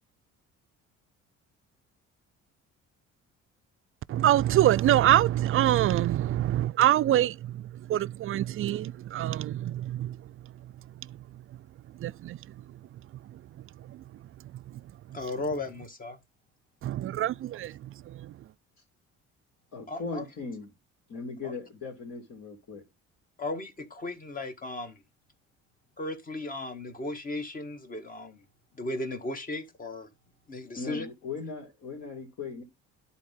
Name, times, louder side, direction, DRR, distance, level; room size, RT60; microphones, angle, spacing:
voice 1, 4.1-10.5 11.0-11.4 12.0-12.8 13.2-14.0 14.5-14.8 15.1-15.2 16.8-18.4, right 13 dB, 45° right, 0.4 m, -26 dB
voice 2, 15.1-16.2 19.9-20.2 21.4-21.5 23.4-25.0 26.0-28.4 28.8-30.1 30.5-31.1, left 2 dB, 30° left, 1.7 m, -36 dB
voice 3, 19.7-20.7 21.1-22.8 30.7-32.6, left 4 dB, 60° left, 3.2 m, -38 dB
11.5 x 4.2 x 3.8 m
cardioid pair, 95°, 29 cm